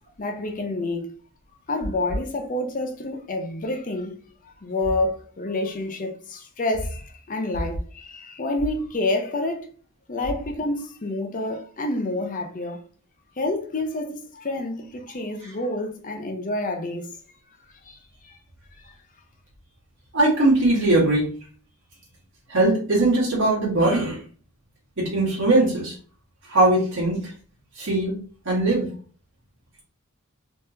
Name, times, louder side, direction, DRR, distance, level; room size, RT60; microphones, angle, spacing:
voice 1, 0.2-1.1 1.7-9.7 10.1-12.8 13.4-17.1 17.9-18.0 18.2-18.4, left 2 dB, 40° left, 0.6 m, -28 dB
voice 2, 20.1-21.3 22.5-24.2 25.0-25.9 26.5-27.2 27.7-28.2 28.4-28.9, right 2 dB, 60° right, 1.6 m, -20 dB
3.4 x 3.1 x 2.8 m
head